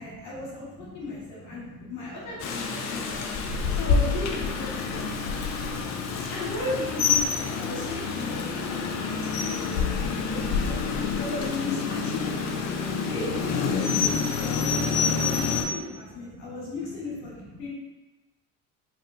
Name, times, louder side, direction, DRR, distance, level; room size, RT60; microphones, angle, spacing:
voice 1, 0.0-3.3 3.7-5.0 6.3-12.4 13.0-17.7, left 2 dB, 70° left, -7 dB, 1.4 m, -36 dB
voice 2, 1.5-2.1 2.7-3.8 5.2-5.6 8.3-8.5 8.8-9.0 9.4-10.2 12.8-13.1 16.0-16.5, equal, 40° right, -5 dB, 1.4 m, -48 dB
Rain, 2.4-15.6, left 5 dB, 40° left, 0.5 m, -27 dB
3.6 x 2.5 x 2.6 m, 1.1 s
hypercardioid pair, 60°, 46 cm